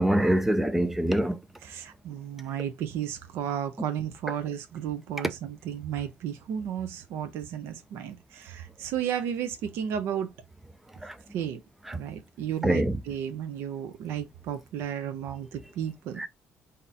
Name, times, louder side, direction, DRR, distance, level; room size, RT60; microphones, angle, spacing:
voice 1, 0.0-1.4 11.0-11.1 11.9-12.0 12.6-13.0 16.2-16.3, right 1 dB, 5° right, 0.4 m, -24 dB
voice 2, 1.6-10.3 11.3-11.6 11.9-16.2, right 9 dB, 75° right, 0.7 m, -33 dB
4.1 x 2.7 x 3.5 m
cardioid pair, 175°, 4 cm